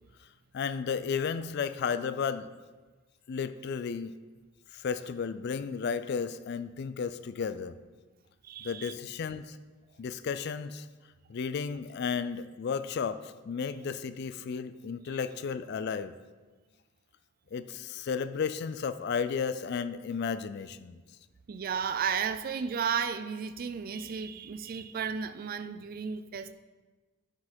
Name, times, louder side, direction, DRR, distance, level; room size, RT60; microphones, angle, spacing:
voice 1, 0.5-2.5 3.3-4.1 4.7-7.8 8.6-9.6 10.0-10.9 11.3-16.1 17.5-21.0, left 6 dB, 50° left, 13 dB, 0.3 m, -33 dB
voice 2, 8.4-8.9 15.1-15.2 21.5-26.5, right 7 dB, 40° right, 12 dB, 0.3 m, -33 dB
9.4 x 4.5 x 4.3 m, 1.3 s
head